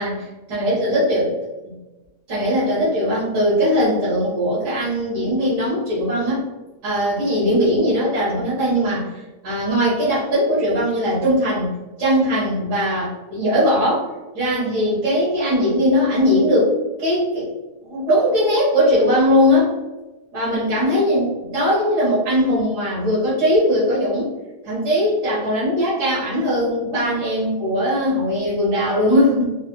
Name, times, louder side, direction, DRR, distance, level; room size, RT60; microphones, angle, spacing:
voice 1, 0.0-1.3 1.7-1.8 2.3-6.4 6.8-9.1 9.4-11.7 12.0-14.1 14.3-16.7 17.0-17.5 17.9-19.7 20.3-24.3 24.6-29.6, equal, 80° right, -9 dB, 1.8 m, -19 dB
4.0 x 2.1 x 3.0 m, 1.1 s
omnidirectional pair, 1.7 m